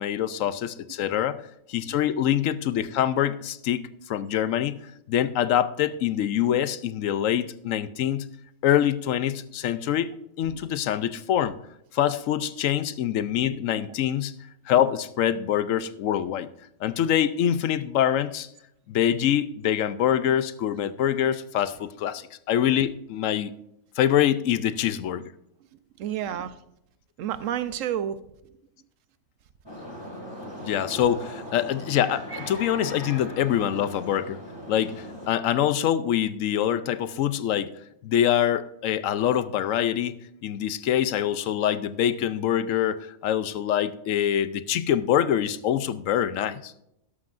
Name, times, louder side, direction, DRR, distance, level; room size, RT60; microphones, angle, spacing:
voice 1, 0.0-1.4 1.7-4.8 5.1-8.3 8.6-11.5 11.9-14.4 14.7-16.5 16.8-18.5 18.9-23.5 24.0-25.3 30.6-34.4 34.7-37.8 38.0-40.1 40.4-46.7, left 10 dB, 80° left, 14 dB, 1.0 m, -25 dB
voice 2, 26.0-26.5 27.2-28.2, right 10 dB, 85° right, 14 dB, 1.0 m, -29 dB
sound 1, 29.7-35.3, equal, 20° left, 2.5 m, -39 dB
13.0 x 11.5 x 2.5 m, 0.80 s
omnidirectional pair, 1.3 m